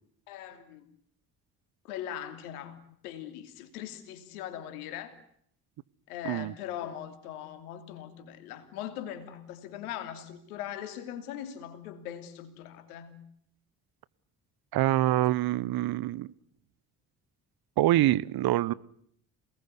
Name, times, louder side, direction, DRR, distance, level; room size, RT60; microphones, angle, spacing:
voice 1, 0.3-0.9 1.8-5.2 6.1-13.2, left 10 dB, 75° left, 10 dB, 3.0 m, -40 dB
voice 2, 14.7-16.3 17.8-18.7, right 14 dB, 55° right, 20 dB, 1.1 m, -25 dB
27.5 x 19.5 x 9.8 m, 0.69 s
figure-of-eight pair, 50°, 45 cm